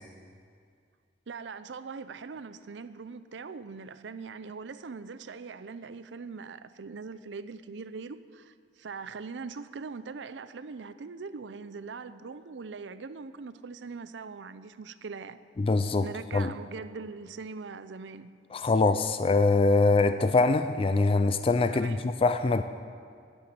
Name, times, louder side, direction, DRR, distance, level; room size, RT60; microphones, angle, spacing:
voice 1, 1.3-15.4 16.0-18.3 21.7-22.1, right 4 dB, 85° right, 0.5 m, -41 dB
voice 2, 15.6-16.1 16.3-16.5 18.5-22.6, left 3 dB, 30° left, 0.4 m, -23 dB
10.5 x 9.9 x 7.9 m
head